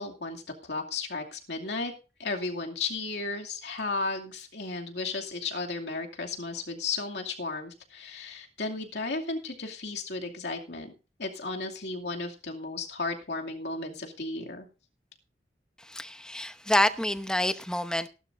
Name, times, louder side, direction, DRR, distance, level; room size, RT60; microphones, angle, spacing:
voice 1, 0.0-1.9 2.2-10.9 11.2-14.7, left 3 dB, 75° left, 2.6 m, -34 dB
voice 2, 15.8-18.1, left 1 dB, 5° left, 0.8 m, -27 dB
17.5 x 12.0 x 2.6 m
head